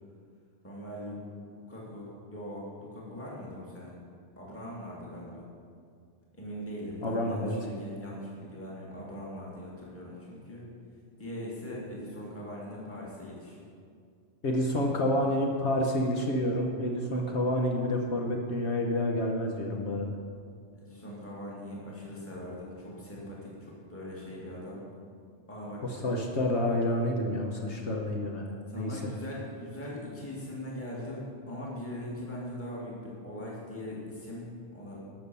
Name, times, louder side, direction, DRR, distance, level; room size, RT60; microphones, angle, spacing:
voice 1, 0.6-1.2 1.7-3.9 4.4-5.5 6.3-10.6 11.2-13.6 20.8-24.8 25.5-26.0 28.7-35.0, left 1 dB, 10° left, -5 dB, 2.1 m, -41 dB
voice 2, 7.0-7.5 14.4-20.1 25.8-29.0, left 1 dB, 65° left, 0 dB, 1.2 m, -29 dB
12.0 x 6.0 x 6.9 m, 2.2 s
omnidirectional pair, 1.3 m